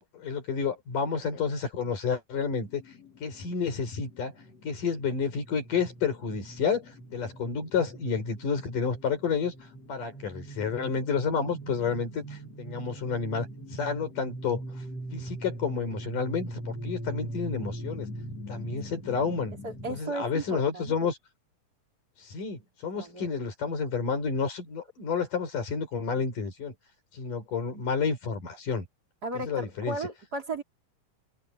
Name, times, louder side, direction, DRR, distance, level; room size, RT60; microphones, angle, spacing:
voice 1, 0.1-2.8 3.2-4.3 4.6-9.5 9.9-14.6 15.1-18.1 18.5-19.6 19.9-21.2 22.2-26.7 27.1-28.9 29.3-30.0, left 5 dB, 70° left, 6.4 m, -30 dB
sound 1, 2.6-20.0, right 1 dB, 50° left, 6.9 m, -42 dB
voice 2, 19.6-21.1 22.9-23.3 29.2-30.6, right 2 dB, 25° right, 4.5 m, -35 dB
open air
omnidirectional pair, 3.9 m